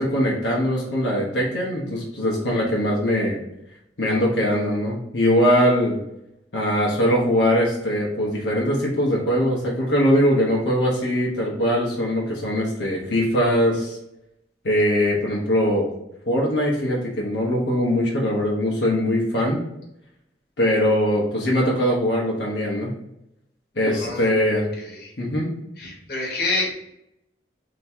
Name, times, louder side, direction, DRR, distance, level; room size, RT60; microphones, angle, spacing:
voice 1, 0.0-3.4 4.0-6.0 6.5-14.0 14.6-15.9 16.3-19.6 20.6-22.9 23.8-24.7 25.2-25.5, equal, 85° left, -3 dB, 1.0 m, -21 dB
voice 2, 24.0-24.3 24.8-25.1 25.8-26.7, left 2 dB, 55° left, -2 dB, 1.2 m, -27 dB
3.5 x 3.0 x 4.3 m, 0.83 s
head